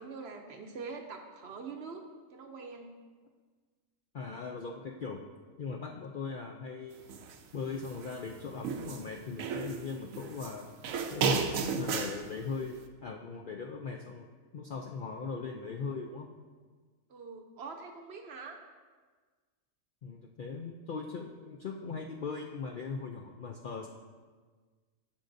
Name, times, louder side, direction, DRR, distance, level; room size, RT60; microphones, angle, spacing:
voice 1, 0.0-2.0 2.3-3.0 17.1-18.6, right 4 dB, 60° right, 3 dB, 0.8 m, -44 dB
voice 2, 4.1-5.2 5.6-7.0 7.5-10.7 11.1-14.3 14.5-16.3 20.0-23.9, left 4 dB, 65° left, 1 dB, 0.5 m, -39 dB
Indoor footsteps foley, 7.1-7.4 7.8-9.0 9.4-10.5 10.8-12.2, right 6 dB, 85° right, 1.1 m, -33 dB
14.5 x 5.2 x 2.6 m, 1.4 s
omnidirectional pair, 1.4 m